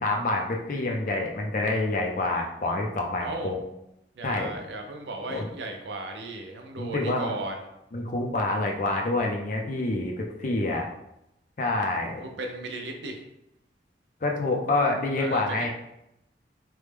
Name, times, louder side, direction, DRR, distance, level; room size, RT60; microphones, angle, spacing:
voice 1, 0.0-3.6 4.2-4.6 5.3-5.5 6.8-7.4 7.9-10.9 11.6-12.2 14.2-15.7, left 2 dB, 45° left, 1 dB, 0.4 m, -27 dB
voice 2, 3.2-3.5 4.2-7.6 12.2-13.2 15.2-15.4, right 2 dB, 80° right, 3 dB, 0.5 m, -35 dB
3.1 x 2.1 x 3.3 m, 0.85 s
head